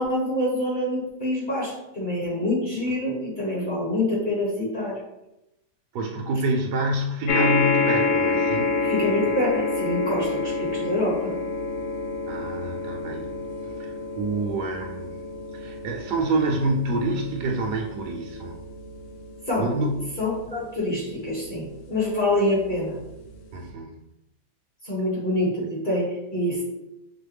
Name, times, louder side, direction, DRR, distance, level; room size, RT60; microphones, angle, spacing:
voice 1, 0.0-5.0 8.8-11.3 19.5-19.7 20.2-23.0 24.8-26.6, left 1 dB, 30° left, -6 dB, 1.2 m, -26 dB
voice 2, 5.9-8.7 12.3-13.4 13.6-15.1 15.5-18.5 19.6-20.2 23.5-23.9, right 2 dB, 75° right, 2 dB, 1.1 m, -27 dB
sound 1, 7.3-21.8 22.6-22.7 22.9-23.0, left 3 dB, 70° left, 0.7 m, -28 dB
6.3 x 2.1 x 3.3 m, 0.90 s
omnidirectional pair, 1.9 m